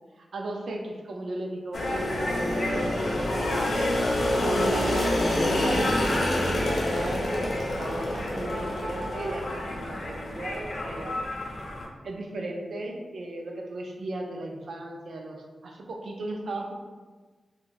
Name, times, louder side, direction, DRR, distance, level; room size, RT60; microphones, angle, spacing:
voice 1, 0.2-3.8 4.4-11.3 12.0-16.7, right 2 dB, 70° right, 1 dB, 0.4 m, -36 dB
sound 1, 1.7-11.9, left 1 dB, 65° left, 0.5 m, -27 dB
3.7 x 2.3 x 2.5 m, 1.3 s
wide cardioid pair, 155°, 0 cm